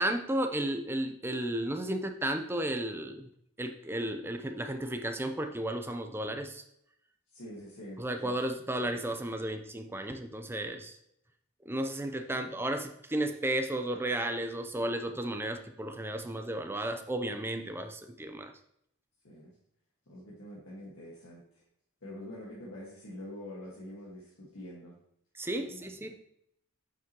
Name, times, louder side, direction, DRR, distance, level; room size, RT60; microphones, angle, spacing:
voice 1, 0.0-3.3 3.6-6.6 8.0-10.9 11.7-18.5 25.4-26.1, right 1 dB, 10° right, 6 dB, 0.5 m, -33 dB
voice 2, 7.3-8.4 8.9-9.5 12.3-12.6 19.2-19.5 20.1-21.6 22.0-25.0 25.5-25.9, left 1 dB, 65° left, -6 dB, 1.6 m, -46 dB
7.5 x 5.9 x 2.9 m, 0.74 s
head